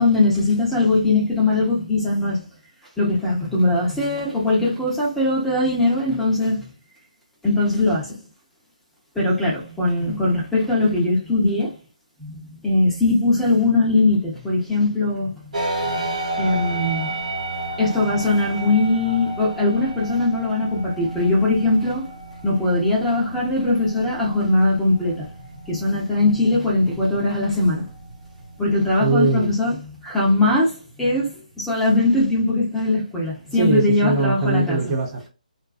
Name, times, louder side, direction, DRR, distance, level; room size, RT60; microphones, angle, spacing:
voice 1, 0.0-2.4 3.0-6.7 7.4-8.2 9.1-11.7 12.2-15.5 16.0-17.2 17.8-22.1 22.4-25.3 25.7-27.9 28.6-34.8, left 2 dB, 5° left, 0.8 m, -20 dB
sound 1, 15.5-29.1, right 1 dB, 65° right, 1.0 m, -32 dB
voice 2, 29.0-29.5 33.5-35.3, right 3 dB, 25° right, 0.7 m, -21 dB
2.4 x 2.2 x 2.4 m
figure-of-eight pair, 150°, 4 cm